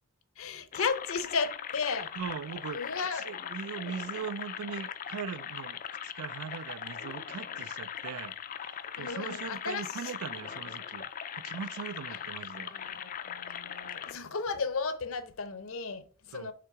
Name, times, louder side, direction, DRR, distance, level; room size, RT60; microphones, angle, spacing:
voice 1, 0.4-2.1 2.7-3.3 9.0-10.1 12.1-12.2 12.6-16.5, left 5 dB, 65° left, 0.7 m, -34 dB
sound 1, 0.7-14.1, left 8 dB, 35° left, 0.3 m, -40 dB
voice 2, 2.2-8.3 8.6-11.1 11.4-12.7 16.3-16.5, right 7 dB, 75° right, 0.3 m, -40 dB
5.8 x 3.5 x 4.8 m
head